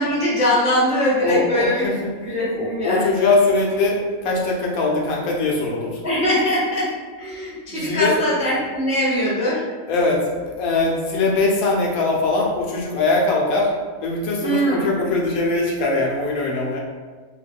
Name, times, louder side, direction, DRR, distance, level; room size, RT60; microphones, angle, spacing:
voice 1, 0.0-1.8 2.2-3.3 6.0-6.9 7.2-9.6 14.4-14.9, equal, 10° right, -7 dB, 0.3 m, -21 dB
voice 2, 1.2-1.9 2.5-6.0 7.7-8.1 9.9-13.7 14.0-16.8, left 3 dB, 85° left, -2 dB, 1.1 m, -21 dB
3.0 x 2.2 x 3.4 m, 1.4 s
omnidirectional pair, 1.4 m